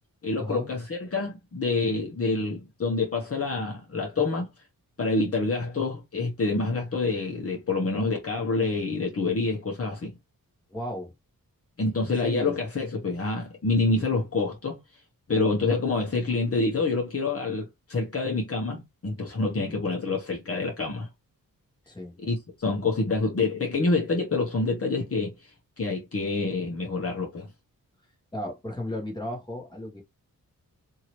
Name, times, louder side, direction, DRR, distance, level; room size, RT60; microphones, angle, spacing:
voice 1, 0.2-4.5 5.0-10.1 11.8-14.8 15.3-21.1 22.2-25.4 25.8-27.5, left 3 dB, 40° left, 1.1 m, -27 dB
voice 2, 10.7-11.1 12.2-12.5 19.5-19.7 21.9-22.2 28.3-30.0, left 1 dB, 10° left, 1.3 m, -34 dB
2.8 x 2.7 x 3.0 m
wide cardioid pair, 105°, 36 cm